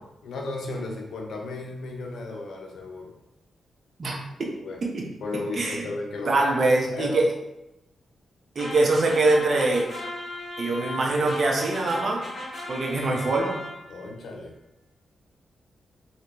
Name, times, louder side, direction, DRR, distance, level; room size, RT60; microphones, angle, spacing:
voice 1, 0.2-3.1 4.6-4.8 5.2-6.4 6.9-7.3 13.9-14.5, left 2 dB, 80° left, 1 dB, 0.6 m, -34 dB
voice 2, 5.5-5.8 6.2-7.2 8.6-9.8 10.6-12.2 12.7-13.6, right 2 dB, 55° right, -1 dB, 0.7 m, -23 dB
sound 1, 8.6-14.1, left 2 dB, 55° left, 1.2 m, -37 dB
3.3 x 2.8 x 3.0 m, 0.91 s
cardioid pair, 55°, 0 cm